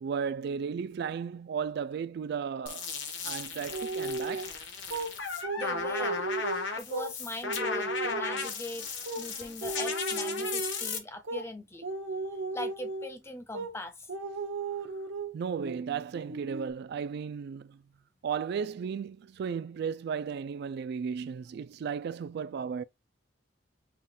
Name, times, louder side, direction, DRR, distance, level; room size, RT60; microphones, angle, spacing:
voice 1, 0.0-2.9 3.2-4.5 15.3-17.8 18.2-22.8, right 6 dB, 60° right, 0.3 m, -35 dB
sound 1, 2.7-11.0, left 5 dB, 75° left, 1.1 m, -35 dB
sound 2, 3.7-4.5 4.9-5.1 5.4-7.1 7.4-8.5 9.1-9.2 9.6-10.9 11.2-11.5 11.8-13.1 13.5-13.7 14.1-15.3 15.6-15.8 16.1-16.7, right 3 dB, 75° right, 0.7 m, -35 dB
voice 2, 5.6-6.2 6.8-8.9 9.2-11.9 12.5-14.1, left 2 dB, 15° left, 0.5 m, -40 dB
5.7 x 2.3 x 3.6 m
head